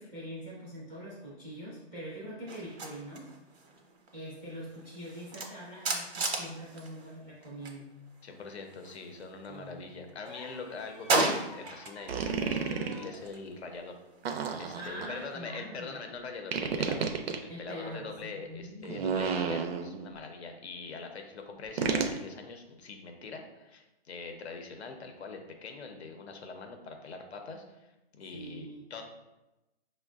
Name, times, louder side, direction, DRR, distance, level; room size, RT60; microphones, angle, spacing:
voice 1, 0.0-3.3 4.1-7.9 9.5-9.8 14.7-16.0 17.5-19.1 28.3-28.9, equal, 5° right, -12 dB, 0.4 m, -43 dB
sound 1, 2.5-7.8 8.1-9.7 10.1-12.2 12.5-15.3, right 3 dB, 90° right, 0.8 m, -36 dB
voice 2, 8.2-13.9 14.3-17.1 17.4-27.9 28.2-29.0, left 4 dB, 90° left, 4 dB, 0.7 m, -43 dB
sound 2, 10.2-13.2 14.8-15.0, left 3 dB, 40° left, 0.7 m, -50 dB
sound 3, 12.1-13.1 14.2-15.1 16.5-17.4 18.8-20.1 21.8-22.2, right 6 dB, 70° right, 0.5 m, -31 dB
5.4 x 2.1 x 2.3 m, 0.98 s
hypercardioid pair, 160°, 32 cm